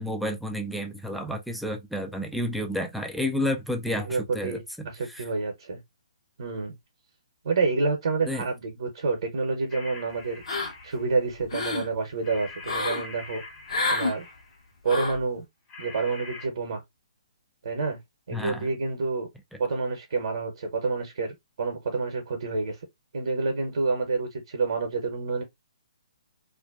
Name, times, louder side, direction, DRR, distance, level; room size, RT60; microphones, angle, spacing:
voice 1, 0.0-5.3 8.3-8.5 18.3-18.7, left 1 dB, ahead, 0.3 m, -31 dB
voice 2, 3.9-5.8 6.4-6.7 7.4-13.4 13.9-14.3 14.8-15.4 15.8-16.8 17.6-18.0 18.3-19.3 19.6-22.8 23.1-25.4, right 4 dB, 60° right, 0.7 m, -28 dB
sound 1, 9.7-11.2 12.2-14.6 15.7-16.5, left 3 dB, 20° left, 0.7 m, -44 dB
sound 2, 10.5-11.0 11.3-11.9 12.6-13.1 13.7-14.1 14.9-15.2, left 3 dB, 60° left, 0.9 m, -28 dB
2.5 x 2.1 x 2.3 m
figure-of-eight pair, 130°, 3 cm